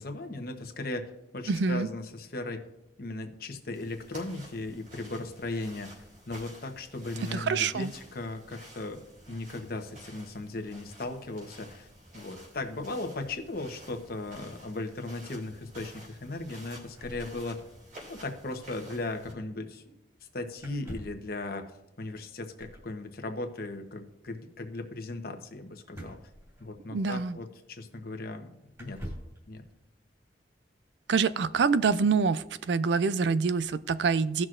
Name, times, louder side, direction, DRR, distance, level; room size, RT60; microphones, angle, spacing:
voice 1, 0.0-2.6 3.0-9.0 9.3-11.9 12.1-17.6 18.1-19.9 20.3-21.7 22.0-26.2 26.6-28.5 28.8-29.0 29.5-29.6, left 2 dB, 55° left, 5 dB, 1.0 m, -37 dB
voice 2, 1.5-1.9 7.3-7.9 26.9-27.4 31.1-34.5, right 5 dB, 75° right, 15 dB, 0.4 m, -26 dB
sound 1, 3.7-19.3, equal, 50° right, 2.7 m, -51 dB
sound 2, 16.9-18.0 18.3-18.4 18.5-18.7 20.6-21.3 22.6-22.9 25.9-27.1 27.9-28.0 28.7-29.4, equal, 20° right, 2.8 m, -45 dB
16.5 x 6.1 x 2.5 m, 0.94 s
head